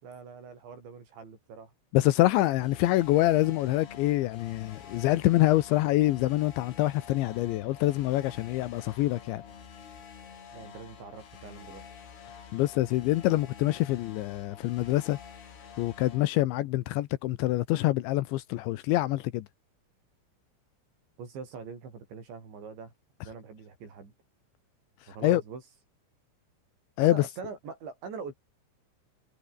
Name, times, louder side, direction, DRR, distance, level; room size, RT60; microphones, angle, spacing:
voice 1, 0.0-1.7 10.5-11.8 21.2-22.9 23.2-24.1 25.1-25.6 27.0-28.3, right 5 dB, 65° right, 8.5 m, -43 dB
voice 2, 1.9-9.4 12.5-15.2 15.8-19.4 25.2-25.4 27.0-27.2, left 16 dB, 80° left, 3.0 m, -25 dB
sound 1, 2.5-16.3, left 7 dB, 55° left, 5.9 m, -48 dB
omnidirectional pair, 5.7 m